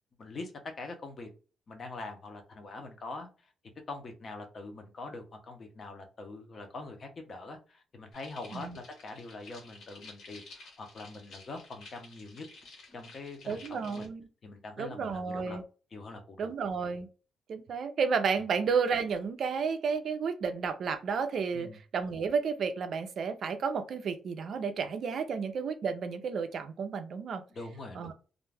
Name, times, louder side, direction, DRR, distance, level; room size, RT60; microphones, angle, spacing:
voice 1, 0.2-1.3 1.7-3.5 3.9-12.5 12.9-14.1 14.4-15.6 15.9-16.5 21.5-21.8 27.5-28.1, left 3 dB, 35° left, 4 dB, 0.6 m, -44 dB
sound 1, 8.1-14.1, left 3 dB, 65° left, 1.1 m, -52 dB
voice 2, 13.5-14.3 14.8-15.6 16.4-17.1 17.5-27.4 28.0-28.1, right 5 dB, 50° right, 9 dB, 0.4 m, -32 dB
2.4 x 2.2 x 3.2 m, 0.35 s
wide cardioid pair, 175°, 0 cm